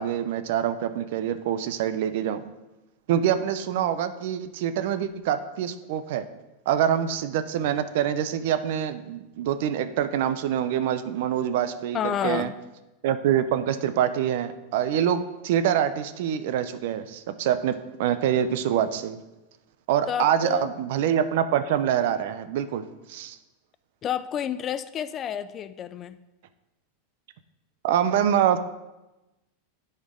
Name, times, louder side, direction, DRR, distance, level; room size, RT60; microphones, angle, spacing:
voice 1, 0.0-2.4 3.1-6.3 6.7-12.0 12.2-12.5 13.0-19.2 19.9-22.8 23.1-23.4 27.8-28.6, right 9 dB, 65° right, 11 dB, 0.5 m, -25 dB
voice 2, 11.9-12.6 20.1-20.7 24.0-26.2, left 9 dB, 30° left, 13 dB, 0.3 m, -30 dB
10.5 x 4.4 x 3.7 m, 1.0 s
supercardioid pair, 140°, 0 cm